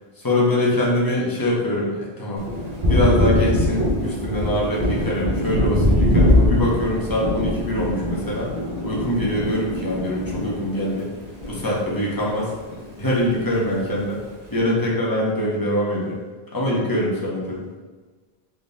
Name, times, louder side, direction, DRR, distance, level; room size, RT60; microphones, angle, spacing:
voice 1, 0.2-2.5 2.9-8.5 8.8-11.1 11.5-12.5 13.0-14.2 14.5-16.2 16.5-17.6, left 1 dB, 25° left, -6 dB, 0.7 m, -23 dB
Thunder, 2.4-12.1 12.4-13.6, left 1 dB, 45° right, 0.7 m, -22 dB
3.5 x 2.9 x 2.6 m, 1.3 s
omnidirectional pair, 1.0 m